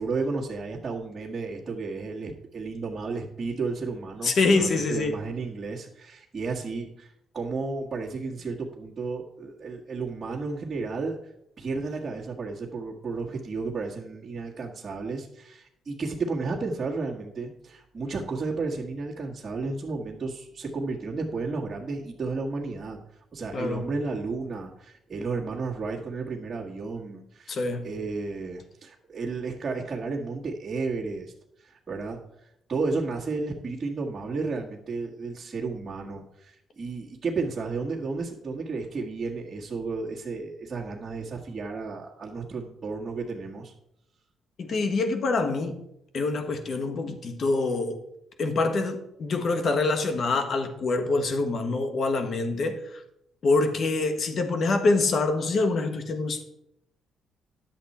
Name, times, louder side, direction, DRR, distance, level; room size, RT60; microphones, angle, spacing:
voice 1, 0.0-11.2 11.6-23.0 23.3-27.6 27.8-31.3 31.6-32.2 32.7-43.7, right 4 dB, 30° right, 1.6 m, -32 dB
voice 2, 4.2-5.2 23.5-23.9 27.5-27.9 44.6-45.8 46.1-48.0 48.4-53.0 53.4-56.4, left 3 dB, 55° left, 1.4 m, -25 dB
10.5 x 7.7 x 4.3 m
cardioid pair, 90°, 0 cm